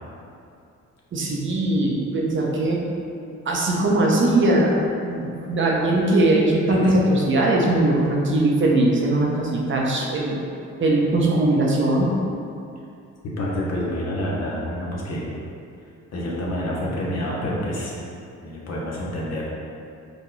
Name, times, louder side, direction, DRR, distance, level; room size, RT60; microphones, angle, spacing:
voice 1, 1.1-2.8 3.5-10.4 10.8-12.1, right 1 dB, 40° right, -2 dB, 0.7 m, -20 dB
voice 2, 13.2-15.4 16.1-18.1 18.4-19.4, equal, 60° left, -4 dB, 1.0 m, -28 dB
4.6 x 2.2 x 3.9 m, 2.6 s
cardioid pair, 90°, 30 cm